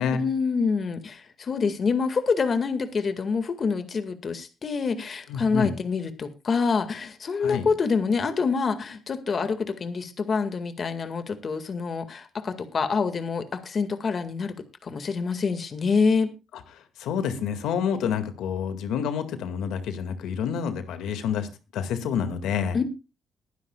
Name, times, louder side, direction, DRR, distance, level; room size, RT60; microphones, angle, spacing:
voice 1, 0.1-16.3 22.7-22.8, left 5 dB, 45° left, 9 dB, 1.9 m, -26 dB
voice 2, 5.3-5.7 7.4-7.7 16.5-22.8, left 7 dB, 85° left, 9 dB, 2.0 m, -28 dB
21.5 x 10.5 x 2.3 m, 0.29 s
cardioid pair, 90°, 0 cm